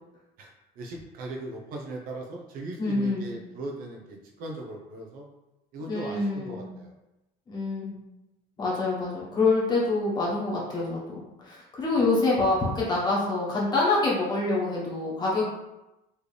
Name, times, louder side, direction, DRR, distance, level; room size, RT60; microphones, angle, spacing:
voice 1, 0.4-5.3 5.7-6.9 11.9-12.1, right 2 dB, 55° right, 1 dB, 0.8 m, -39 dB
voice 2, 2.8-3.3 5.9-6.7 7.5-8.0 8.6-15.4, left 3 dB, 25° left, -5 dB, 1.3 m, -26 dB
4.5 x 3.2 x 3.4 m, 0.95 s
cardioid pair, 165°, 18 cm